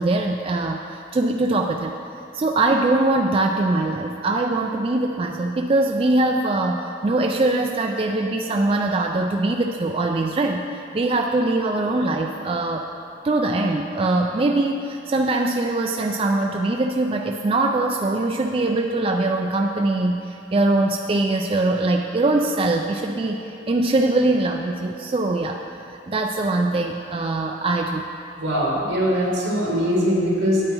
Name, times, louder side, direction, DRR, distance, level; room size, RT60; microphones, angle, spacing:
voice 1, 0.0-1.9 2.3-10.6 10.9-12.9 13.2-25.6 26.1-28.0, right 2 dB, 30° right, 2 dB, 0.3 m, -22 dB
voice 2, 28.4-30.6, equal, 80° right, -4 dB, 2.5 m, -21 dB
8.9 x 8.8 x 4.5 m, 2.7 s
head